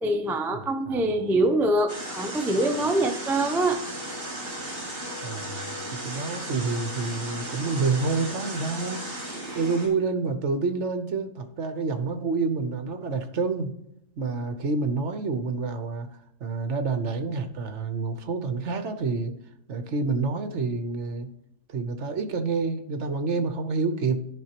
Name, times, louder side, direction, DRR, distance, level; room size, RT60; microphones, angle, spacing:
voice 1, 0.0-3.8, right 1 dB, 5° right, 4 dB, 0.4 m, -24 dB
voice 2, 0.5-1.1 5.2-9.0 9.5-13.7 14.2-16.1 16.4-19.3 19.7-21.3 21.7-24.3, right 4 dB, 65° right, 8 dB, 1.2 m, -28 dB
sound 1, 1.9-9.9, right 1 dB, 45° right, 2.4 m, -35 dB
12.5 x 5.4 x 2.9 m, 0.80 s
omnidirectional pair, 1.4 m